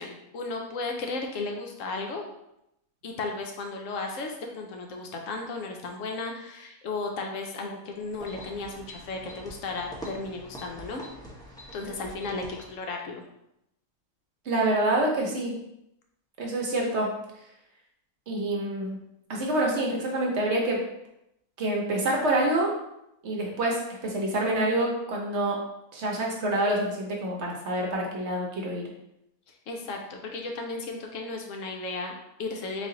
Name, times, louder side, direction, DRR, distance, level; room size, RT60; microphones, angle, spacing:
voice 1, 0.0-2.2 3.0-11.0 11.7-12.4 12.7-13.2 29.7-32.9, left 3 dB, 70° left, 2 dB, 0.9 m, -34 dB
sound 1, 8.0-12.9, equal, 5° left, 0.5 m, -44 dB
voice 2, 14.5-15.6 16.4-17.1 18.3-19.0 19.3-20.8 21.6-22.7 23.2-25.6 25.9-28.8, right 1 dB, 60° right, -1 dB, 0.9 m, -27 dB
4.1 x 2.5 x 3.7 m, 0.83 s
omnidirectional pair, 1.5 m